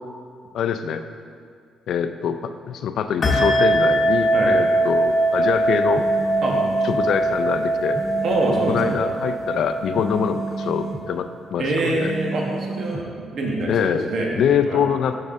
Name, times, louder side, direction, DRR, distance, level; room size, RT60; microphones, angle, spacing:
voice 1, 0.5-1.0 1.9-6.0 6.8-8.0 8.7-12.1 13.7-15.2, left 8 dB, 70° left, 9 dB, 0.3 m, -24 dB
sound 1, 3.2-11.3, right 1 dB, 40° left, 1.1 m, -22 dB
sound 2, 5.9-7.0 7.9-9.0 9.9-11.0 11.9-13.0, right 3 dB, 25° right, 0.6 m, -31 dB
voice 2, 8.2-8.9 11.6-13.0 13.3-14.3 14.6-14.8, right 2 dB, 60° right, -1 dB, 1.2 m, -24 dB
6.3 x 6.3 x 3.6 m, 2.1 s
cardioid pair, 90°, 0 cm